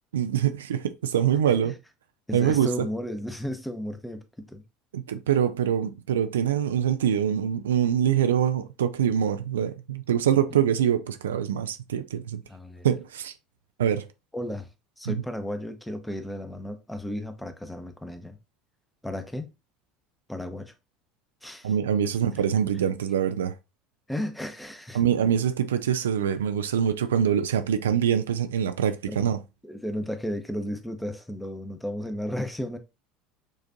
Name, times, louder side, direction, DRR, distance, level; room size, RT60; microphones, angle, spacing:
voice 1, 0.1-1.8 2.3-2.9 4.9-12.4 12.8-13.3 13.8-14.1 15.1-15.2 21.6-23.6 24.9-29.4, right 9 dB, 70° right, 0.3 m, -24 dB
voice 2, 2.3-4.6 12.5-12.9 14.3-14.7 15.0-18.4 19.0-19.5 20.3-20.7 21.4-21.7 24.1-25.0 29.1-29.3 29.6-32.8, equal, 5° left, 0.7 m, -34 dB
6.5 x 2.5 x 2.6 m
figure-of-eight pair, 70°, 0 cm